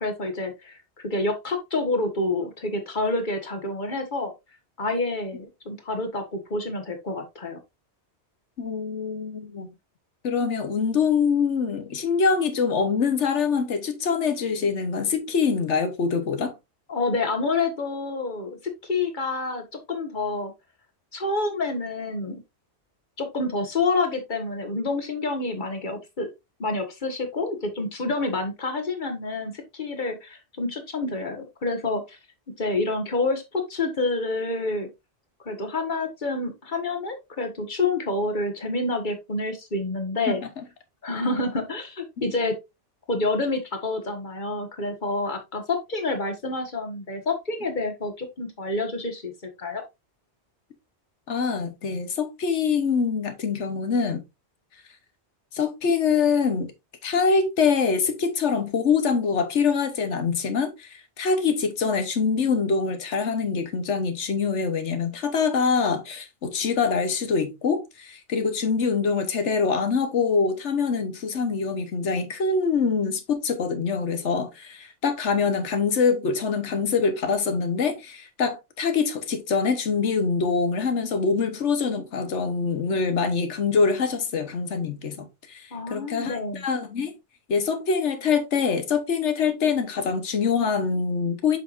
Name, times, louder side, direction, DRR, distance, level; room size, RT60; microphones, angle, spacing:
voice 1, 0.0-4.3 4.8-7.6 16.9-18.6 18.8-20.5 21.1-22.4 23.2-26.3 26.6-32.2 32.6-34.9 35.4-40.4 41.0-42.5 43.1-49.3 49.6-49.8 85.7-86.6, left 2 dB, 45° left, 1.6 m, -28 dB
voice 2, 8.6-9.7 10.2-16.5 40.3-40.4 51.3-54.2 55.5-56.7 57.0-87.1 87.5-91.6, left 5 dB, 85° left, 1.4 m, -24 dB
7.4 x 5.7 x 2.5 m
omnidirectional pair, 1.2 m